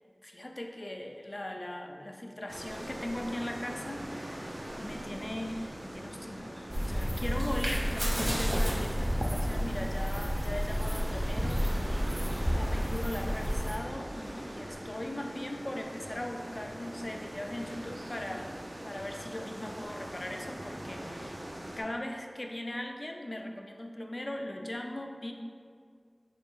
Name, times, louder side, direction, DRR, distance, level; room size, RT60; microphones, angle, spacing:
voice 1, 0.2-12.2 12.5-18.6 18.8-21.5 21.8-25.3, left 1 dB, 55° left, 4 dB, 0.3 m, -39 dB
sound 1, 2.5-21.8, right 1 dB, 90° right, 0.5 m, -42 dB
sound 2, 6.7-13.8, equal, 20° right, 0.4 m, -31 dB
sound 3, 6.8-12.5, equal, 70° right, 1.0 m, -38 dB
4.3 x 2.4 x 3.5 m, 2.1 s
wide cardioid pair, 45°, 0 cm